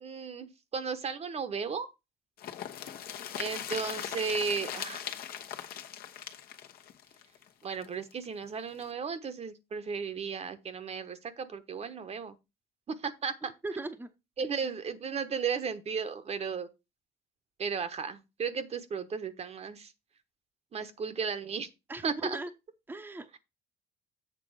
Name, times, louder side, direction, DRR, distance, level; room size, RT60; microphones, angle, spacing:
voice 1, 0.0-1.9 3.3-5.0 7.6-12.3 12.9-13.3 14.4-16.7 17.6-19.9 20.7-21.7 22.0-22.4, right 5 dB, 40° right, 1.0 m, -35 dB
sound 1, 2.4-8.1 8.4-8.5 8.8-8.9, left 10 dB, 65° left, 1.1 m, -40 dB
voice 2, 13.6-14.1 21.9-22.5 22.9-23.4, right 2 dB, 10° right, 0.8 m, -38 dB
7.7 x 3.8 x 6.4 m
cardioid pair, 110°, 17 cm